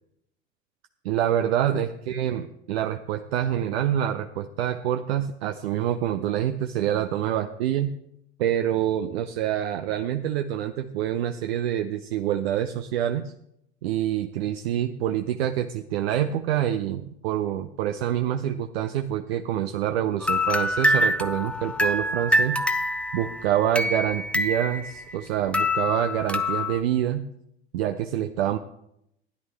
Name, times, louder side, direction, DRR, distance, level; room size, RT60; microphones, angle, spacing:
voice 1, 1.0-7.9 8.4-13.3 13.8-22.6 23.1-27.3 27.7-28.6, right 11 dB, 65° right, 8 dB, 0.7 m, -26 dB
sound 1, 20.2-25.2 25.5-26.8, left 1 dB, 5° left, 0.7 m, -25 dB
15.5 x 10.5 x 3.4 m, 0.79 s
figure-of-eight pair, 65°, 33 cm